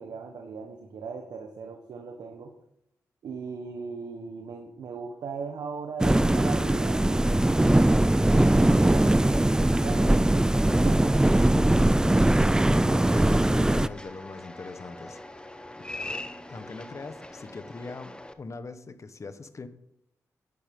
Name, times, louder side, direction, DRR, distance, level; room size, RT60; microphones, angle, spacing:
voice 1, 0.0-2.5 3.2-10.6 10.8-11.3, right 5 dB, 80° right, 3 dB, 1.4 m, -39 dB
sound 1, 6.0-13.9, right 1 dB, 10° right, 0.4 m, -21 dB
voice 2, 12.7-15.5 15.8-19.7, left 3 dB, 50° left, 10 dB, 1.3 m, -41 dB
sound 2, 13.0-18.3, left 2 dB, 15° left, 1.1 m, -42 dB
11.0 x 9.9 x 5.4 m, 0.75 s
cardioid pair, 50°, 7 cm